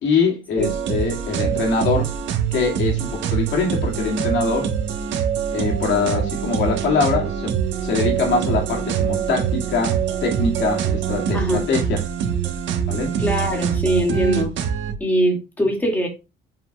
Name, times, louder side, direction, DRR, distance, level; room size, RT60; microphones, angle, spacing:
voice 1, 0.0-2.1 2.5-4.7 5.5-7.5 7.8-12.0 12.9-13.1, left 4 dB, 70° left, 2.5 m, -23 dB
sound 1, 0.6-14.9, right 8 dB, 80° right, 1.4 m, -24 dB
voice 2, 11.3-11.7 13.2-14.6 15.0-16.1, equal, 10° left, 2.3 m, -21 dB
7.7 x 5.7 x 2.4 m
cardioid pair, 170°, 19 cm